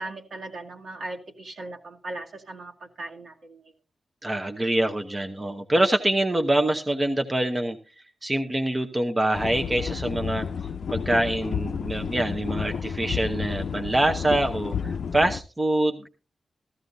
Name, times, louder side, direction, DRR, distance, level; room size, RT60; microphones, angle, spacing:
voice 1, 0.0-3.6, right 2 dB, 65° right, 1 dB, 2.1 m, -38 dB
voice 2, 4.2-7.8 8.2-10.4 10.9-16.1, right 1 dB, 20° right, 5 dB, 0.8 m, -25 dB
sound 1, 9.3-15.4, left 6 dB, 70° left, 0.5 m, -31 dB
14.5 x 14.5 x 2.7 m, 0.33 s
wide cardioid pair, 120°, 0 cm